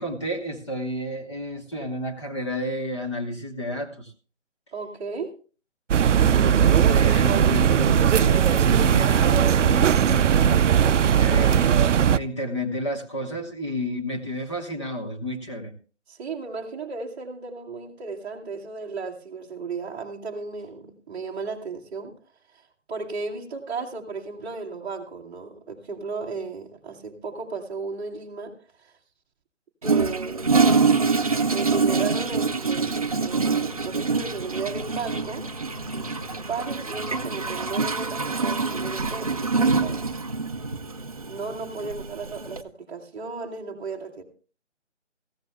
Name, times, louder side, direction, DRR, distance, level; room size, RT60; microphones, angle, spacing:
voice 1, 0.0-4.1 6.1-11.7 12.1-15.7, left 1 dB, 25° left, 2 dB, 1.1 m, -31 dB
voice 2, 4.7-5.3 16.1-22.1 22.5-22.6 22.9-28.5 28.8-28.9 29.8-31.2 31.5-35.4 35.9-40.0 41.3-44.2, right 4 dB, 10° right, -7 dB, 1.3 m, -35 dB
sound 1, 5.9-12.2, right 9 dB, 80° right, 0.5 m, -19 dB
Toilet flush, 29.8-42.6, right 4 dB, 30° right, 0.5 m, -25 dB
17.0 x 14.5 x 2.2 m, 0.37 s
hypercardioid pair, 165°, 36 cm